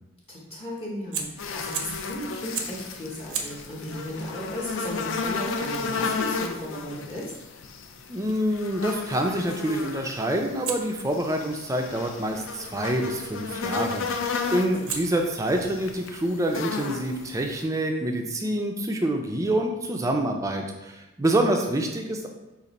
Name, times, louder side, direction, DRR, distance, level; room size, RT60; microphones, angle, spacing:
voice 1, 0.3-7.3 14.4-14.9, equal, 25° left, -6 dB, 0.8 m, -35 dB
Fire, 1.1-2.1 2.5-2.9 3.3-8.2 10.6-12.7 14.1-14.4 14.9-18.3, right 6 dB, 85° right, 0.6 m, -40 dB
sound 1, 1.4-17.6, left 4 dB, 65° left, 0.4 m, -33 dB
voice 2, 8.1-22.3, right 1 dB, 15° right, 3 dB, 0.4 m, -27 dB
5.1 x 2.5 x 4.0 m, 0.99 s
head